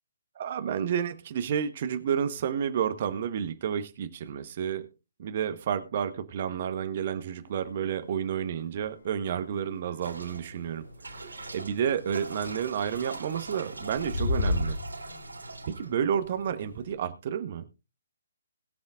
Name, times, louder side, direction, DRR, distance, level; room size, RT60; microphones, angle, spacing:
voice 1, 0.3-4.9 5.2-14.8 15.7-17.7, right 8 dB, 40° right, 1.2 m, -30 dB
sound 1, 8.6-8.9 9.5-9.6 9.9-10.0 10.3-10.4 12.4-12.5 12.8-13.2 13.8-15.2, left 2 dB, 60° left, 1.8 m, -30 dB
sound 2, 10.0-16.9, right 2 dB, 70° right, 3.5 m, -43 dB
21.5 x 7.6 x 2.5 m
figure-of-eight pair, 135°, 0 cm